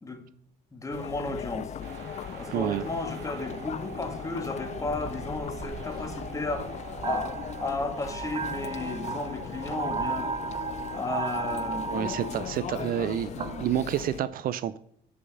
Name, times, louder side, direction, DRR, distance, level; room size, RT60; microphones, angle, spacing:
voice 1, 0.7-1.7 2.4-6.7 7.0-10.3 10.9-12.4 12.7-12.9, left 2 dB, 20° left, 1.8 m, -34 dB
Chatter, 0.9-14.2, left 9 dB, 40° left, 0.5 m, -39 dB
sound 1, 1.8-7.7, right 6 dB, 80° right, 1.5 m, -44 dB
voice 2, 2.5-2.9 11.9-14.8, right 11 dB, 60° right, 0.5 m, -29 dB
sound 2, 4.8-13.7, right 5 dB, 35° right, 0.8 m, -36 dB
9.8 x 5.5 x 5.3 m
cardioid pair, 110°, 17 cm